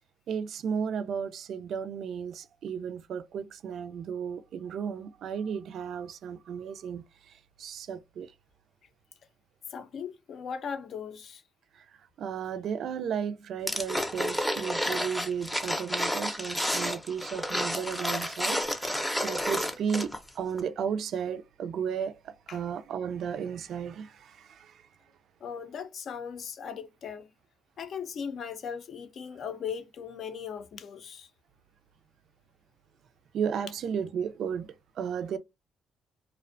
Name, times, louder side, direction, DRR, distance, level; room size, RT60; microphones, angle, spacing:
voice 1, 0.3-8.3 11.7-11.9 12.2-24.8 33.3-35.4, right 7 dB, 70° right, 0.3 m, -34 dB
voice 2, 9.7-11.4 22.5-22.6 25.4-27.3 27.8-31.3, left 7 dB, 60° left, 0.5 m, -38 dB
sound 1, 13.7-20.3 20.6-20.7, equal, 5° left, 0.5 m, -30 dB
2.5 x 2.1 x 2.4 m
cardioid pair, 90°, 0 cm